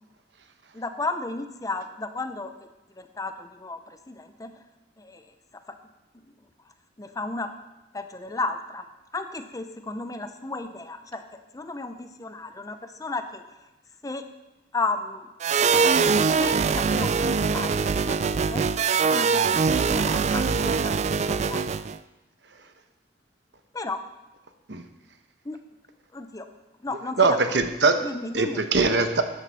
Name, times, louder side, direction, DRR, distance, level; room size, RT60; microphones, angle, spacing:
voice 1, 0.7-2.5 3.0-4.5 5.0-5.2 7.0-7.5 7.9-8.8 9.1-11.2 11.5-13.4 14.0-14.3 14.7-15.3 16.0-16.1 16.4-18.6 19.1-21.0 21.3-21.8 23.7-24.0 25.4-25.6 26.1-26.5 26.8-27.2 27.5-27.6 28.0-28.6, left 3 dB, 20° left, 8 dB, 0.6 m, -34 dB
sound 1, 15.4-22.0, right 5 dB, 40° right, 0.3 m, -23 dB
voice 2, 27.2-28.0 28.3-29.2, right 3 dB, 75° right, 8 dB, 1.0 m, -21 dB
12.5 x 9.4 x 4.3 m, 1.0 s
head